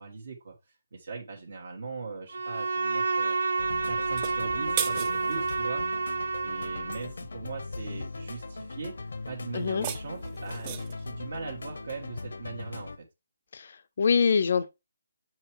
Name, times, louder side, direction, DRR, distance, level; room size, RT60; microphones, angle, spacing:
voice 1, 0.0-5.8 6.4-9.0 9.3-13.0, right 4 dB, 65° right, 1.4 m, -40 dB
Bowed string instrument, 2.3-7.1, right 4 dB, 80° right, 0.8 m, -29 dB
sound 1, 3.6-13.0, left 3 dB, 80° left, 0.7 m, -40 dB
sound 2, 4.0-5.6 9.6-11.1, right 9 dB, 20° right, 0.4 m, -36 dB
voice 2, 9.5-9.9 13.5-14.7, left 5 dB, 50° left, 0.5 m, -25 dB
7.1 x 4.5 x 3.1 m
hypercardioid pair, 170°, 0 cm